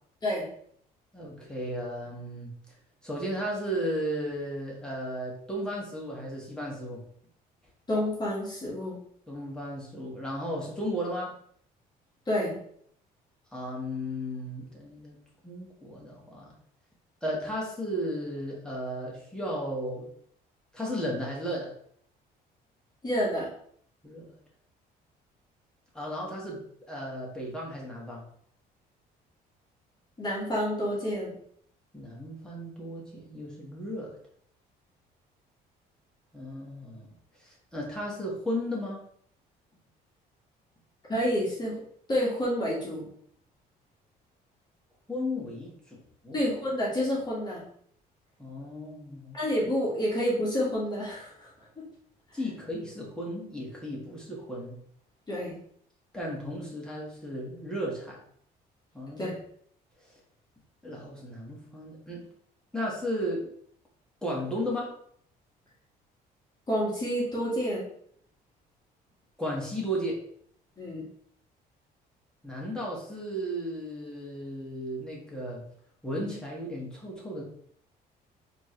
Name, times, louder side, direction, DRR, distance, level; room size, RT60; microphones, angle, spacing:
voice 1, 1.1-2.5 3.0-7.0 9.3-11.3 13.5-15.2 15.4-16.5 17.2-20.1 20.7-21.7 24.0-24.4 25.9-28.2 31.9-34.1 36.3-37.1 37.4-39.0 45.1-46.4 48.4-49.4 52.3-54.8 56.1-58.2 58.9-59.4 60.8-62.3 62.7-63.5 64.2-64.9 69.4-70.2 72.4-75.6 76.0-77.4, equal, 5° left, -4 dB, 1.5 m, -34 dB
voice 2, 7.9-9.0 12.3-12.6 23.0-23.5 30.2-31.3 41.1-41.8 42.1-43.0 46.3-47.6 49.3-51.5 51.8-51.9 55.3-55.6 59.2-59.3 66.7-67.8 70.8-71.0, equal, 25° left, -5 dB, 1.6 m, -29 dB
4.3 x 3.0 x 3.2 m, 0.63 s
cardioid pair, 110°, 17 cm